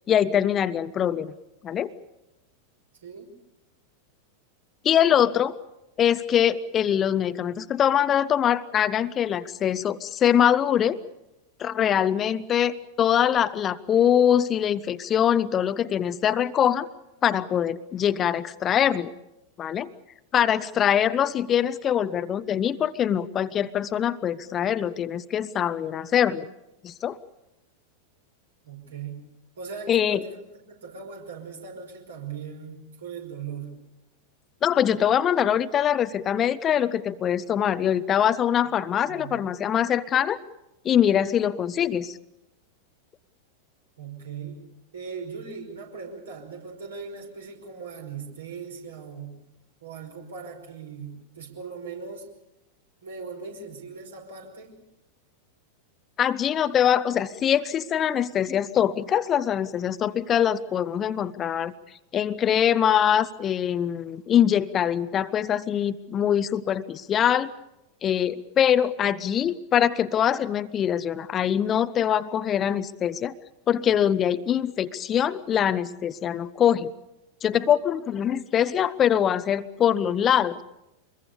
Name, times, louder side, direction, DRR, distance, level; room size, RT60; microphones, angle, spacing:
voice 1, 0.1-1.3 1.6-1.9 4.8-5.5 6.0-11.0 11.6-16.9 17.2-19.1 19.6-19.9 20.3-26.5 26.8-27.2 29.9-30.2 34.6-40.4 40.8-42.2 56.2-61.7 62.1-67.5 68.0-73.3 73.7-76.9 77.4-80.6, left 9 dB, 25° left, 15 dB, 0.7 m, -23 dB
voice 2, 3.0-3.3 28.6-29.2 29.6-30.4 30.7-33.7 38.6-38.8 39.1-39.4 44.0-44.6 44.9-49.3 49.8-52.3 53.0-54.7, right 5 dB, 65° right, 2 dB, 5.3 m, -39 dB
25.5 x 21.5 x 6.9 m, 0.91 s
figure-of-eight pair, 90°, 0 cm